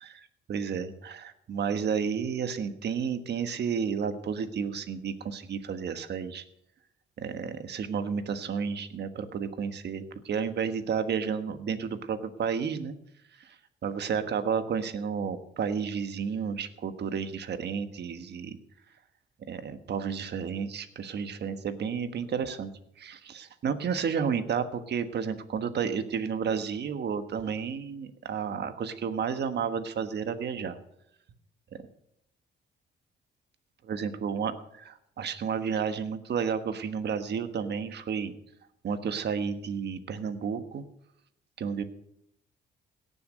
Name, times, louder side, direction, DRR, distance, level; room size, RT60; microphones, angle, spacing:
voice 1, 0.0-6.4 7.2-12.9 13.4-13.6 13.8-18.6 19.5-22.7 23.0-30.8 33.8-38.3 38.8-40.8 41.6-41.8, right 6 dB, 60° right, 9 dB, 1.4 m, -31 dB
17.5 x 7.0 x 6.7 m, 0.79 s
cardioid pair, 90°, 20 cm